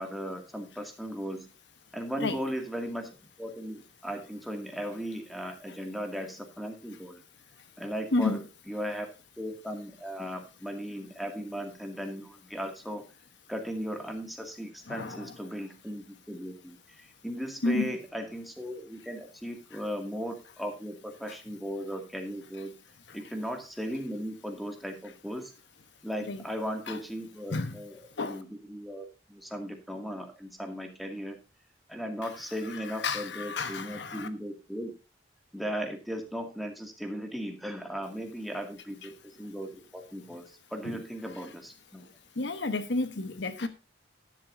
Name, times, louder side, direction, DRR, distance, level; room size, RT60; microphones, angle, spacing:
voice 1, 0.0-1.5 1.9-7.2 7.8-9.1 9.4-13.0 13.5-22.7 23.1-25.5 26.0-31.4 31.9-34.9 35.5-42.1, equal, ahead, 2.2 m, -37 dB
voice 2, 14.9-15.4 17.6-18.0 21.3-21.4 26.3-26.4 26.9-27.0 27.5-27.8 28.2-28.4 32.6-34.3 40.8-41.0 41.3-41.5 42.4-43.7, left 3 dB, 70° left, 1.1 m, -31 dB
12.0 x 11.0 x 2.7 m
head